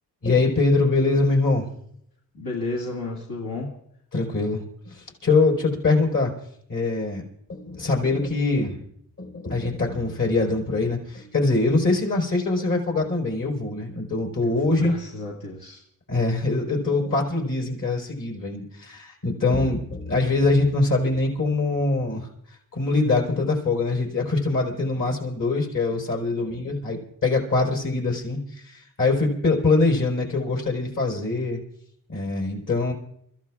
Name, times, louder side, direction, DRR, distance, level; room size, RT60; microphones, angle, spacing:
voice 1, 0.2-1.7 4.1-6.3 6.7-7.2 7.5-8.8 9.2-14.9 16.1-22.3 22.7-31.6 32.1-32.9, left 3 dB, 60° left, -1 dB, 4.5 m, -23 dB
voice 2, 2.3-3.7 14.4-15.8, left 2 dB, 80° left, -4 dB, 2.4 m, -32 dB
30.0 x 15.0 x 2.4 m, 0.72 s
cardioid pair, 115°, 36 cm